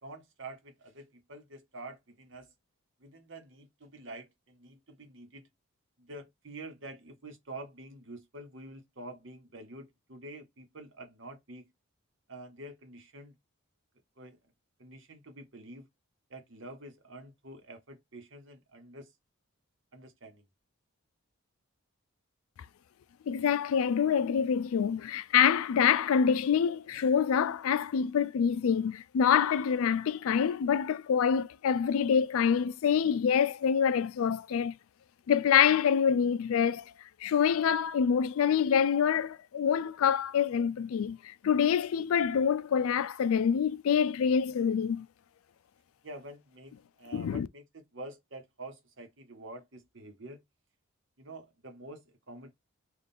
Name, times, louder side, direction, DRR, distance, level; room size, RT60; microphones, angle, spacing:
voice 1, 0.0-2.5 3.0-5.5 6.0-11.7 12.3-13.4 14.2-14.4 14.8-15.9 16.3-19.1 19.9-20.5 46.0-50.4 51.2-52.5, right 2 dB, 55° right, 1.0 m, -47 dB
voice 2, 23.3-34.7 35.3-36.8 37.2-45.1 47.1-47.5, left 7 dB, 75° left, 0.3 m, -26 dB
3.5 x 2.4 x 4.2 m
head